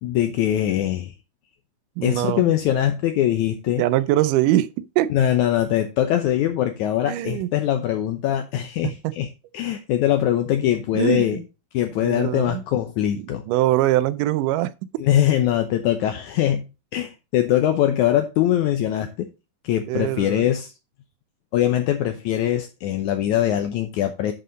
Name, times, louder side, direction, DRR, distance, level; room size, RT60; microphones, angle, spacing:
voice 1, 0.0-1.1 2.0-3.8 5.1-9.3 9.5-11.4 11.7-13.4 15.0-16.7 16.9-19.3 19.6-20.7 21.5-24.3, left 11 dB, 75° left, 2.1 m, -22 dB
voice 2, 2.0-2.5 3.8-5.1 7.1-7.5 8.8-9.1 11.0-11.4 12.0-12.6 13.5-14.7 19.9-20.5, right 15 dB, 85° right, 2.1 m, -22 dB
11.0 x 5.5 x 3.9 m
omnidirectional pair, 3.6 m